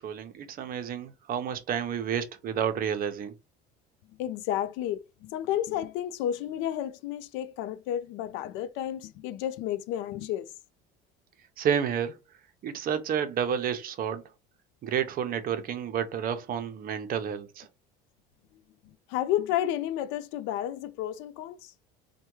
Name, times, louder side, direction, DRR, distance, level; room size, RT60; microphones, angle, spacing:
voice 1, 0.0-3.3 11.6-12.2 12.6-14.2 14.8-17.7, right 8 dB, 45° right, 0.6 m, -30 dB
voice 2, 4.2-10.5 19.1-21.7, left 11 dB, 75° left, 0.4 m, -31 dB
3.4 x 2.2 x 3.0 m
supercardioid pair, 110°, 20 cm